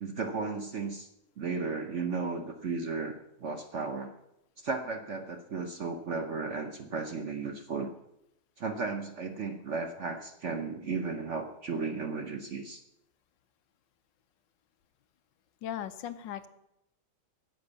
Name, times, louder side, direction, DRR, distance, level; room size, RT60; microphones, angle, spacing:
voice 1, 0.0-1.1 1.4-4.1 4.6-7.9 8.6-12.8, right 4 dB, 65° right, 7 dB, 0.7 m, -35 dB
voice 2, 15.6-16.5, left 10 dB, 70° left, 11 dB, 1.3 m, -37 dB
10.5 x 7.8 x 8.3 m, 0.83 s
omnidirectional pair, 2.3 m